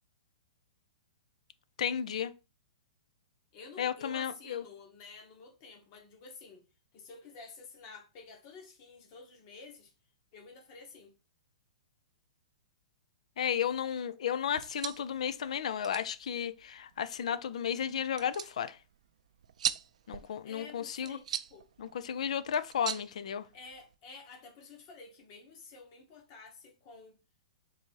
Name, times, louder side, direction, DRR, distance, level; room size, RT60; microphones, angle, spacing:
voice 1, 1.8-2.3 3.8-4.6 13.4-18.8 20.1-21.2 21.8-23.5, left 8 dB, 70° left, 0.4 m, -33 dB
voice 2, 3.5-6.6 6.9-9.9 10.3-11.1 20.4-21.7 23.5-27.2, left 4 dB, 35° left, 1.2 m, -51 dB
sound 1, 14.5-24.0, right 9 dB, 75° right, 0.3 m, -42 dB
3.7 x 2.7 x 4.6 m
hypercardioid pair, 165°, 4 cm